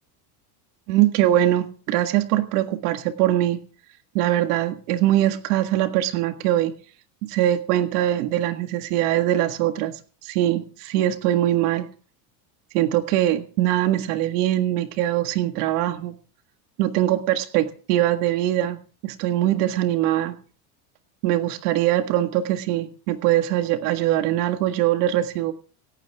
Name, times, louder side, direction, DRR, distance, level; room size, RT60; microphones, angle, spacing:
voice 1, 0.9-3.6 4.1-6.7 7.2-10.0 10.2-11.9 12.7-16.1 16.8-18.8 19.0-20.3 21.2-25.5, right 13 dB, 85° right, 7 dB, 1.8 m, -22 dB
27.5 x 9.2 x 3.5 m, 0.40 s
cardioid pair, 170°, 45 cm